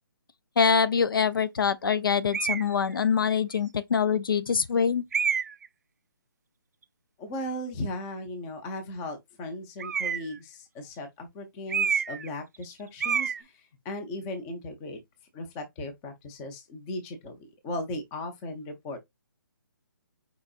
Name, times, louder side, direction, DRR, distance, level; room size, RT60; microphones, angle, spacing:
voice 1, 0.6-5.1, left 6 dB, 70° left, 0.5 m, -24 dB
sound 1, 2.3-2.7 3.5-3.6 5.1-5.7 9.8-10.4 11.7-12.3 12.5-12.7 13.0-13.4, right 6 dB, 45° right, 0.4 m, -28 dB
voice 2, 7.2-15.0 15.3-19.0, left 1 dB, 10° left, 0.5 m, -37 dB
4.7 x 3.9 x 2.4 m
hypercardioid pair, 170°, 12 cm